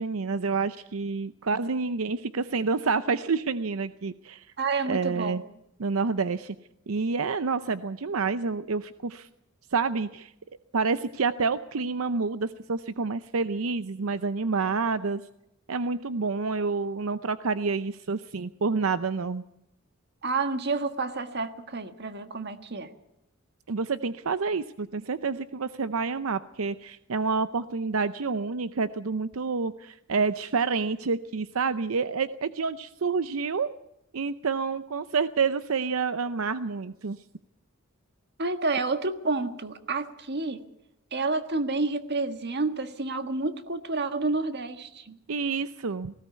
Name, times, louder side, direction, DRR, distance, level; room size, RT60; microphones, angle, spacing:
voice 1, 0.0-4.5 4.8-5.4 5.8-6.6 6.9-9.3 9.7-10.3 10.7-15.2 15.7-19.4 23.7-33.7 34.1-37.2 45.3-46.1, right 4 dB, 80° right, 13 dB, 0.7 m, -28 dB
voice 2, 4.6-5.4 20.2-22.9 38.4-40.6 41.1-45.2, right 3 dB, 55° right, 9 dB, 1.6 m, -29 dB
19.0 x 17.0 x 8.2 m, 0.83 s
head